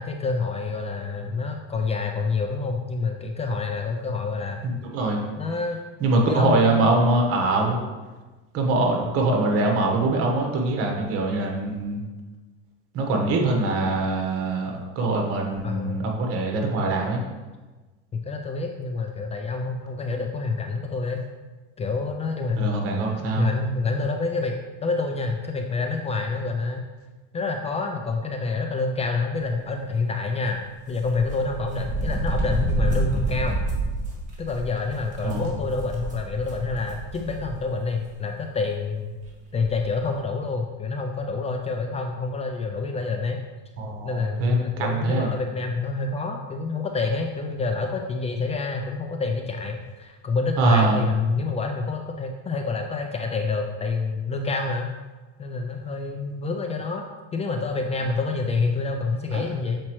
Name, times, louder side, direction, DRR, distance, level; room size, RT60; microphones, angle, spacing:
voice 1, 0.0-4.6 5.4-5.8 6.3-6.9 15.6-16.1 18.1-21.2 21.8-22.7 23.1-26.8 27.3-30.6 30.9-33.6 34.4-39.1 39.5-43.4 44.0-54.9 55.4-57.0 57.3-59.8, left 4 dB, 20° left, 3 dB, 0.4 m, -27 dB
voice 2, 4.6-5.2 6.0-7.8 8.5-12.0 12.9-17.2 22.5-23.5 35.2-35.4 43.8-45.3 50.6-51.1 59.3-59.4, right 2 dB, 50° right, 1 dB, 1.3 m, -23 dB
sound 1, 30.9-37.7 38.0-38.1 39.2-39.3 39.6-39.8, right 1 dB, 25° right, 1.7 m, -28 dB
7.1 x 4.4 x 3.1 m, 1.3 s
supercardioid pair, 125°, 29 cm